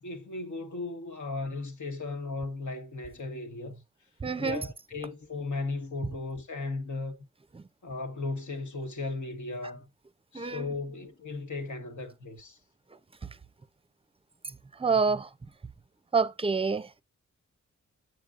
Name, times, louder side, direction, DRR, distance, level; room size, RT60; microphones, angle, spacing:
voice 1, 0.0-3.8 4.4-7.1 7.8-9.9 10.3-12.6, left 3 dB, 65° left, 1.3 m, -36 dB
voice 2, 4.2-4.6 10.3-10.6 14.8-15.3 16.1-17.0, right 5 dB, 20° right, 0.6 m, -27 dB
7.7 x 6.9 x 2.5 m
cardioid pair, 50°, 32 cm